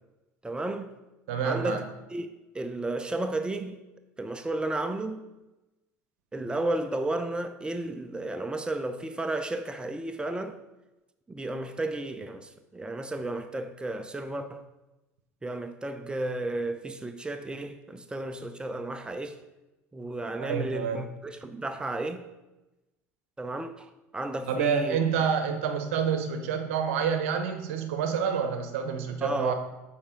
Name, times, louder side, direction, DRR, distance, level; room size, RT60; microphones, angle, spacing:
voice 1, 0.4-0.9 1.4-1.8 2.1-2.3 2.5-3.8 4.2-5.3 6.3-10.6 11.3-14.6 15.4-19.4 19.9-22.2 23.4-25.0 29.2-29.5, right 2 dB, 10° right, 0.6 m, -33 dB
voice 2, 1.3-1.9 20.4-21.0 24.5-29.5, right 7 dB, 80° right, 0.9 m, -28 dB
7.1 x 4.4 x 5.1 m
hypercardioid pair, 80°, 7 cm